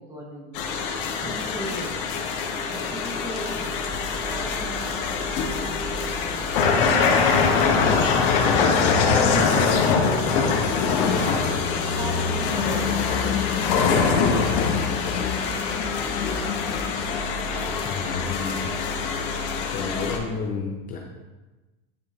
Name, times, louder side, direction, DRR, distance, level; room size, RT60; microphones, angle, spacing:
voice 1, 0.1-0.6 1.2-2.0 2.7-3.7 4.2-7.9 8.5-10.0 10.2-11.1 11.9-12.2 12.5-15.0, equal, 10° right, -1 dB, 0.8 m, -38 dB
sound 1, 0.5-20.2, left 5 dB, 60° left, 1.0 m, -23 dB
sound 2, 3.7-16.0, left 5 dB, 80° left, 1.5 m, -42 dB
voice 2, 17.8-18.7 19.7-21.0, left 5 dB, 25° left, 0 dB, 0.5 m, -30 dB
9.8 x 5.1 x 2.4 m, 1.2 s
supercardioid pair, 165°, 31 cm